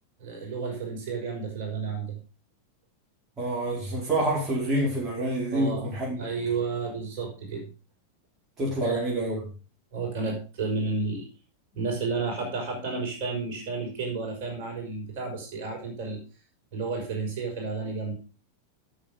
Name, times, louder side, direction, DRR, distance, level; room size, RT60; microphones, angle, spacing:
voice 1, 0.2-2.2 5.5-5.9 6.2-7.7 8.8-9.0 9.9-11.3 11.7-16.2 16.7-18.1, right 4 dB, 50° right, 5.6 m, -31 dB
voice 2, 3.4-6.2 8.6-9.4, right 1 dB, 25° right, 4.6 m, -27 dB
12.0 x 7.1 x 5.2 m
figure-of-eight pair, 90°, 0 cm